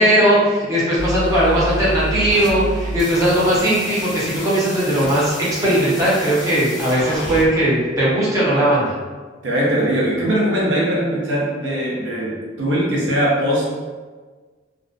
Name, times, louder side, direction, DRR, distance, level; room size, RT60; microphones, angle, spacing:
voice 1, 0.0-8.9, right 1 dB, 20° right, -8 dB, 0.7 m, -18 dB
sound 1, 1.0-7.4, equal, 20° left, 0.5 m, -29 dB
voice 2, 9.4-13.7, right 1 dB, 75° right, -5 dB, 0.6 m, -20 dB
2.3 x 2.1 x 2.5 m, 1.4 s
head